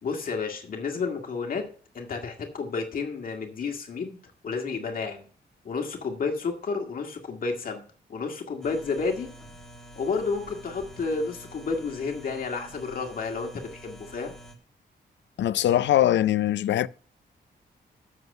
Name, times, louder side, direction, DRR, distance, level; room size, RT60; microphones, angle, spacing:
voice 1, 0.0-1.6 1.9-4.2 4.4-5.3 5.6-7.8 8.1-9.3 10.0-14.3, left 4 dB, 50° left, 1.9 m, -31 dB
sound 1, 8.6-14.5, equal, 5° left, 1.8 m, -47 dB
voice 2, 15.4-16.9, left 12 dB, 85° left, 0.5 m, -22 dB
7.9 x 7.5 x 5.3 m
wide cardioid pair, 135°, 18 cm